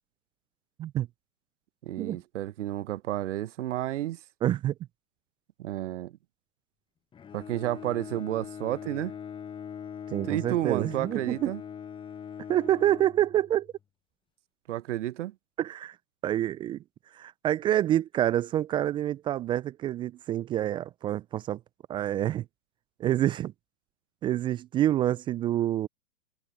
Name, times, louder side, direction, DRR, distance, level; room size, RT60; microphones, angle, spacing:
voice 1, 1.8-4.2 5.6-6.1 7.3-9.2 10.3-11.6 14.7-15.3, right 14 dB, 50° right, 1.0 m, -31 dB
voice 2, 4.4-4.7 10.1-11.5 12.5-13.7 15.6-16.0 16.2-16.8 17.1-21.6 21.9-22.5 23.0-23.5 24.2-25.9, right 12 dB, 10° right, 0.5 m, -27 dB
Bowed string instrument, 7.1-13.8, left 8 dB, 10° left, 1.1 m, -42 dB
figure-of-eight pair, 115°, 47 cm